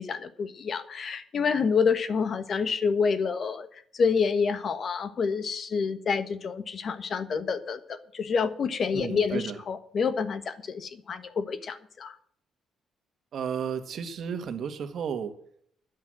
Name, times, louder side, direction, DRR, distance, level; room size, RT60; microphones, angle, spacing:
voice 1, 0.0-3.7 4.0-12.1, left 5 dB, 50° left, 12 dB, 1.3 m, -28 dB
voice 2, 8.9-9.6 13.3-15.3, right 7 dB, 60° right, 8 dB, 1.6 m, -33 dB
10.5 x 8.4 x 7.7 m, 0.63 s
cardioid pair, 90°, 0 cm